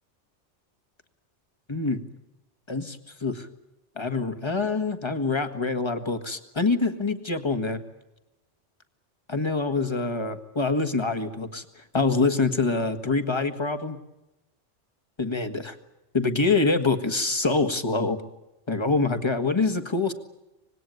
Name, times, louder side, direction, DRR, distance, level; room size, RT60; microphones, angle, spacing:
voice 1, 1.7-2.0 2.7-3.5 4.0-7.8 9.3-14.0 15.2-15.7 16.1-18.2 18.7-20.1, left 3 dB, 25° left, 9 dB, 1.6 m, -25 dB
25.5 x 20.0 x 9.3 m, 0.95 s
omnidirectional pair, 1.2 m